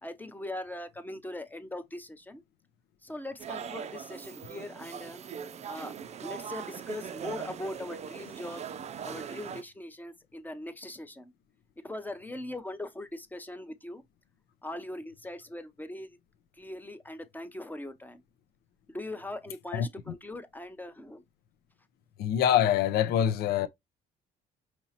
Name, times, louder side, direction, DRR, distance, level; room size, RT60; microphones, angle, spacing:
voice 1, 0.0-2.4 3.0-5.2 5.6-6.0 6.2-8.7 9.0-11.3 11.8-14.0 14.6-16.2 16.5-18.2 18.9-21.2, left 1 dB, 10° left, 0.7 m, -40 dB
sound 1, 3.4-9.6, right 7 dB, 40° right, 0.5 m, -40 dB
voice 2, 22.2-23.7, left 10 dB, 70° left, 0.6 m, -24 dB
5.3 x 2.9 x 2.8 m
cardioid pair, 110°, 17 cm